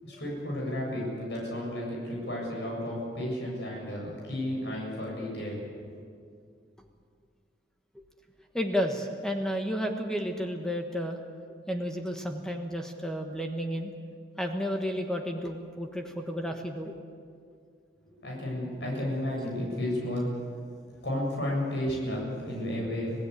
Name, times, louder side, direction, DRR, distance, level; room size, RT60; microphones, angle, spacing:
voice 1, 0.0-5.9 18.2-20.3 21.0-23.3, left 1 dB, 70° left, -2 dB, 7.6 m, -32 dB
voice 2, 8.5-11.2 11.7-13.9 14.4-17.0, equal, 5° left, 3 dB, 1.3 m, -32 dB
26.5 x 17.5 x 8.2 m, 2.2 s
head